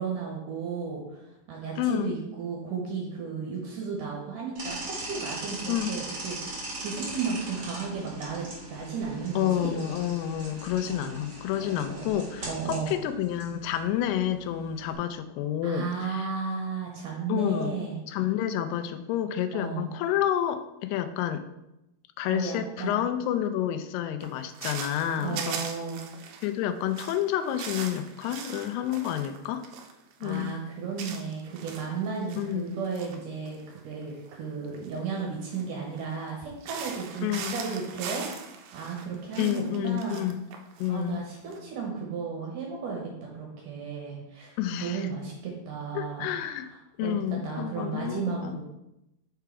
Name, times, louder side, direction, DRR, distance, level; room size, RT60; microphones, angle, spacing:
voice 1, 0.0-6.4 6.8-9.8 10.9-11.2 11.6-12.1 12.5-12.9 15.6-18.0 19.5-19.9 22.3-23.0 25.2-26.0 30.2-38.3 38.7-40.3 40.9-46.3 47.0-48.7, right 5 dB, 70° right, -1 dB, 2.2 m, -34 dB
voice 2, 1.8-2.2 5.7-6.0 9.4-16.3 17.3-17.8 18.1-21.4 22.2-25.6 26.4-29.7 30.2-30.5 32.4-32.8 37.2-37.6 39.4-40.5 40.8-41.2 44.6-45.1 46.0-46.7 47.0-48.6, left 11 dB, 85° left, 9 dB, 2.6 m, -29 dB
sound 1, 4.5-14.9, right 2 dB, 40° right, 1.4 m, -40 dB
sound 2, 24.2-26.5 26.8-33.2 33.5-36.3 36.6-41.6, right 6 dB, 85° right, 2.0 m, -40 dB
6.0 x 4.6 x 4.6 m, 0.89 s
omnidirectional pair, 4.7 m